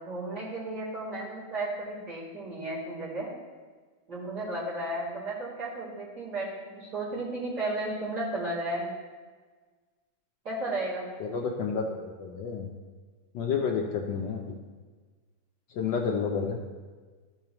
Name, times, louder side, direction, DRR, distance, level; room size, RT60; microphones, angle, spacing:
voice 1, 0.0-3.3 4.1-6.5 6.7-8.9 10.5-11.1, right 2 dB, 45° right, -9 dB, 3.3 m, -33 dB
voice 2, 11.2-12.7 13.3-14.5 15.7-16.6, left 6 dB, 70° left, 1 dB, 1.2 m, -30 dB
14.0 x 5.6 x 2.9 m, 1.4 s
omnidirectional pair, 2.3 m